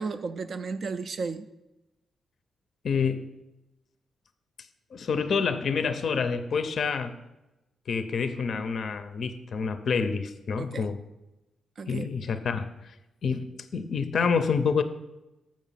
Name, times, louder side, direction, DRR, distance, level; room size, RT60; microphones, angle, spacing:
voice 1, 0.0-1.5 10.6-10.9 11.8-12.1, right 4 dB, 45° right, 10 dB, 0.3 m, -33 dB
voice 2, 2.8-3.3 4.9-7.2 7.9-11.0 11.9-12.7 13.2-13.5 13.7-14.8, left 5 dB, 50° left, 10 dB, 0.5 m, -27 dB
7.3 x 5.1 x 5.6 m, 0.99 s
wide cardioid pair, 155°, 0 cm